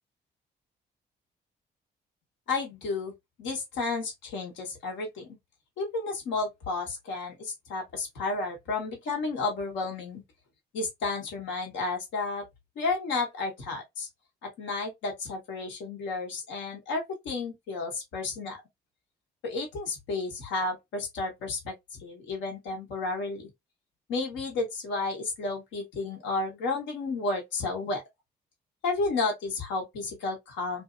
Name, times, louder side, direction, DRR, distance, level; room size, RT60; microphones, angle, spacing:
voice 1, 2.5-3.1 3.4-5.4 5.8-10.2 10.7-12.4 12.8-14.1 14.4-18.6 19.4-23.5 24.1-28.0 28.8-30.8, left 3 dB, 85° left, 1.2 m, -32 dB
2.7 x 2.6 x 2.5 m
supercardioid pair, 60°, 19 cm